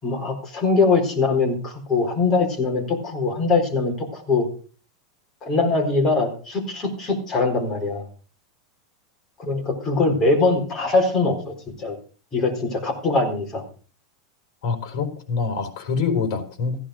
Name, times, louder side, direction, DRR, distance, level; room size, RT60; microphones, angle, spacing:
voice 1, 0.0-4.5 5.4-8.0 9.4-11.9 12.3-13.6, left 3 dB, 20° left, 0 dB, 4.3 m, -22 dB
voice 2, 14.6-16.8, left 5 dB, 50° left, 6 dB, 4.2 m, -25 dB
15.5 x 10.0 x 5.1 m, 0.39 s
supercardioid pair, 165°, 3 cm